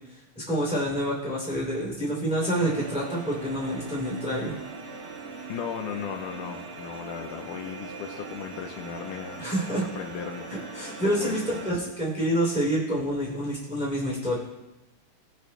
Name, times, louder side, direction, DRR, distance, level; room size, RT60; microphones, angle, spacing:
voice 1, 0.5-4.6 9.4-9.8 10.7-14.4, right 1 dB, ahead, -5 dB, 2.5 m, -27 dB
sound 1, 2.4-11.7, right 3 dB, 55° right, 1.8 m, -40 dB
voice 2, 5.5-9.5 9.8-10.5 11.0-11.5 11.8-12.4, left 7 dB, 80° left, 3 dB, 2.2 m, -37 dB
18.5 x 6.4 x 2.2 m, 1.0 s
omnidirectional pair, 3.7 m